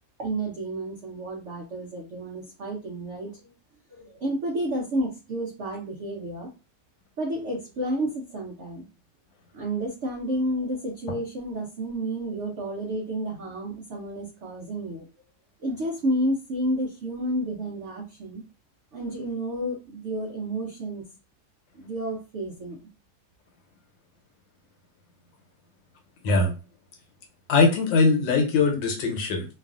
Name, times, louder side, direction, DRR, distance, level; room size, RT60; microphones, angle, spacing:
voice 1, 0.2-3.3 4.0-6.5 7.2-8.9 9.5-15.0 15.6-18.4 18.9-21.0 21.7-22.8, right 1 dB, 80° right, 0 dB, 0.6 m, -30 dB
voice 2, 27.5-29.5, left 3 dB, 80° left, 3 dB, 1.5 m, -21 dB
3.1 x 2.4 x 2.4 m, 0.31 s
omnidirectional pair, 2.0 m